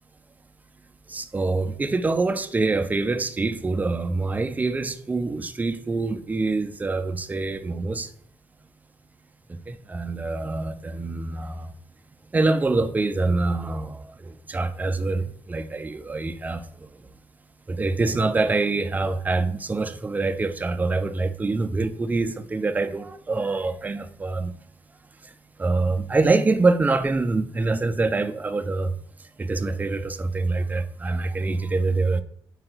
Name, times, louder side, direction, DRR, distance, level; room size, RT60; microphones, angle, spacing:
voice 1, 1.1-8.1 9.5-11.7 12.3-16.6 17.7-24.5 25.6-28.9 29.4-32.2, right 3 dB, 20° right, 0.4 m, -25 dB
4.7 x 2.2 x 3.9 m
cardioid pair, 85°, 8 cm